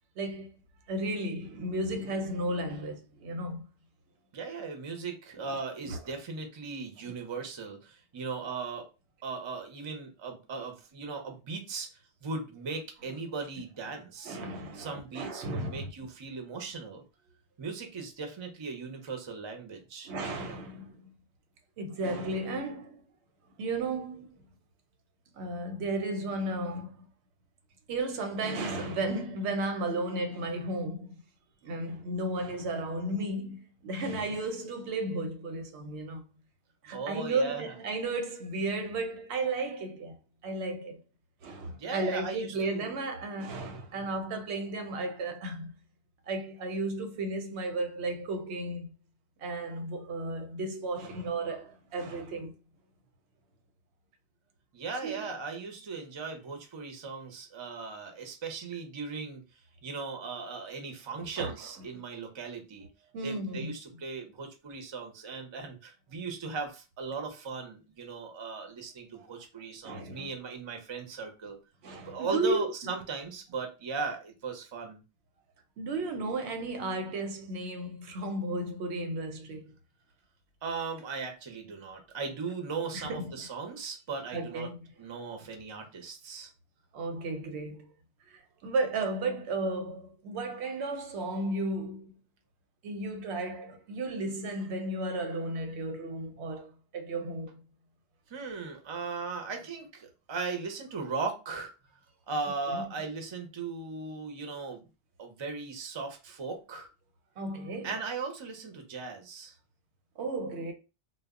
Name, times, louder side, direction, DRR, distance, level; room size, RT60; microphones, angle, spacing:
voice 1, 0.2-0.5 0.9-3.7 5.5-5.6 5.8-6.0 7.1-7.2 14.2-15.9 20.0-21.1 21.8-23.0 23.6-24.4 25.3-26.9 27.9-31.1 31.6-36.2 36.8-40.2 40.4-41.0 41.4-45.7 46.3-48.9 49.4-52.5 55.0-55.3 61.2-61.5 63.1-63.7 69.8-70.3 71.8-72.9 75.8-79.6 82.9-83.3 84.3-84.8 86.9-87.9 88.3-92.1 92.8-97.6 102.7-102.8 107.4-108.0 110.2-110.7, right 2 dB, 85° right, 0.8 m, -34 dB
voice 2, 4.3-8.9 9.2-11.9 12.2-14.4 14.7-17.0 17.6-20.1 36.9-37.6 41.8-42.8 54.7-59.4 59.8-62.9 63.2-71.6 72.0-75.0 80.6-84.7 85.0-86.5 98.3-101.7 102.3-104.8 105.2-106.9 107.8-109.5, right 4 dB, 40° right, 0.4 m, -38 dB
2.0 x 2.0 x 3.5 m
omnidirectional pair, 1.1 m